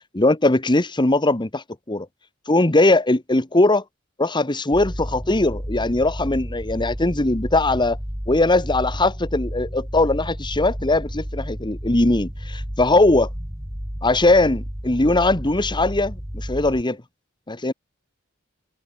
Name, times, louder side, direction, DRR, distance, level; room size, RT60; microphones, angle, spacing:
voice 1, 0.1-2.1 2.5-3.8 4.2-8.0 8.3-13.3 14.0-17.0 17.5-17.7, left 2 dB, 20° left, 1.4 m, -20 dB
sound 1, 4.7-16.8, equal, 15° right, 3.9 m, -32 dB
head